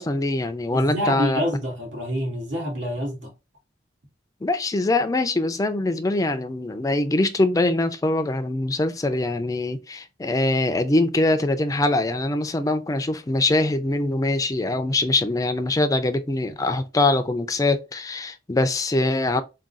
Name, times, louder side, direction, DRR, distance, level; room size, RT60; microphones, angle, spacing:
voice 1, 0.0-1.4 4.4-19.4, left 2 dB, 20° left, 0.4 m, -23 dB
voice 2, 0.7-3.3, equal, 85° right, 1.7 m, -27 dB
3.6 x 2.2 x 3.9 m
head